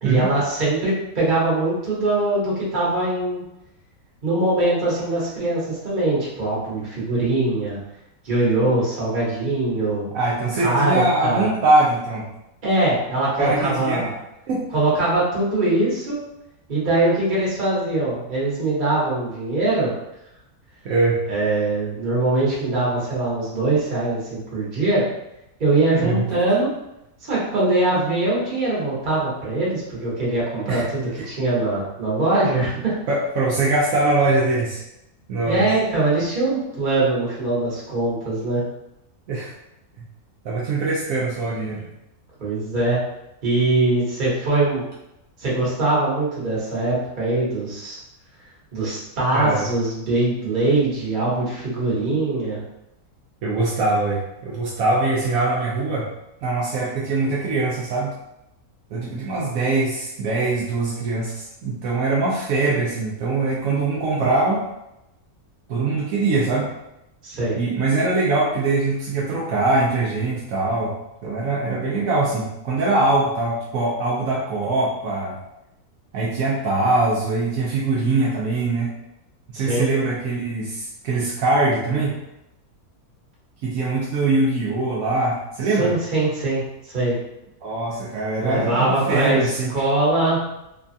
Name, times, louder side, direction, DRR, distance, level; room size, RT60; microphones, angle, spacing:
voice 1, 0.0-3.4 4.2-7.8 8.2-10.1 10.6-11.5 12.6-14.1 14.7-16.2 16.7-19.9 21.3-25.0 25.6-26.7 27.2-33.0 35.4-38.6 42.4-43.0 43.4-44.8 45.4-48.0 48.7-52.6 67.2-67.6 79.5-79.9 85.8-87.2 88.4-90.4, right 2 dB, 35° right, -6 dB, 1.1 m, -22 dB
voice 2, 10.1-12.3 13.4-14.1 14.5-14.6 20.8-21.2 26.0-26.2 30.7-30.8 31.2-31.3 33.1-34.8 35.3-35.7 39.3-39.5 40.4-41.8 49.3-49.7 53.4-56.1 56.4-58.1 58.9-64.6 65.7-66.7 67.6-71.0 71.2-75.4 76.1-78.9 79.5-82.2 83.6-85.9 87.6-89.7, right 2 dB, 75° right, -5 dB, 1.0 m, -22 dB
3.2 x 2.3 x 2.6 m, 0.88 s
omnidirectional pair, 1.6 m